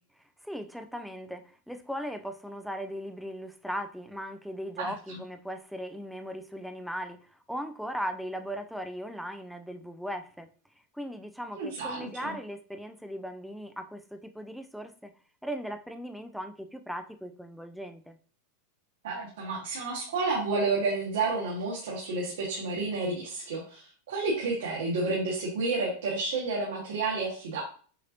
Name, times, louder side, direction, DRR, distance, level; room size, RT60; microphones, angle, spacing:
voice 1, 0.4-10.5 10.9-15.1 15.4-18.2, equal, ahead, 7 dB, 0.4 m, -38 dB
voice 2, 4.8-5.2 11.5-12.3 19.0-23.8 24.1-27.6, right 3 dB, 85° right, -5 dB, 1.4 m, -30 dB
6.4 x 2.8 x 2.6 m, 0.42 s
supercardioid pair, 140°, 0 cm